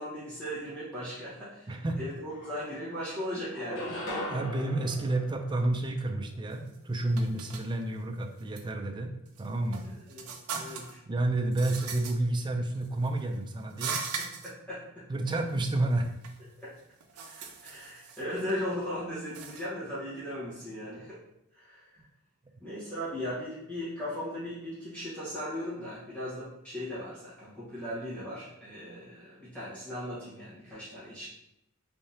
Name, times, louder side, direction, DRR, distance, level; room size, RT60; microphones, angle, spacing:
voice 1, 0.0-3.9 9.8-11.0 14.0-15.0 16.6-16.7 17.3-21.2 21.5-22.0 22.6-31.3, equal, 5° left, -12 dB, 1.1 m, -38 dB
voice 2, 1.7-2.0 3.9-4.0 4.3-9.1 9.4-9.9 10.5-14.0 15.1-16.1, right 2 dB, 20° right, 5 dB, 0.4 m, -30 dB
sound 1, 1.9-2.0 2.3-3.1 3.5-6.1, equal, 60° left, 1.1 m, -39 dB
sound 2, 6.5-6.8 7.2-7.7 8.4-8.6 9.3-11.0 11.5-12.1 12.7-13.2 13.7-14.5 15.3-15.4 15.7-16.4 16.8-18.6 19.2-19.7, right 6 dB, 85° right, 0.5 m, -39 dB
3.5 x 3.4 x 2.7 m, 0.80 s
head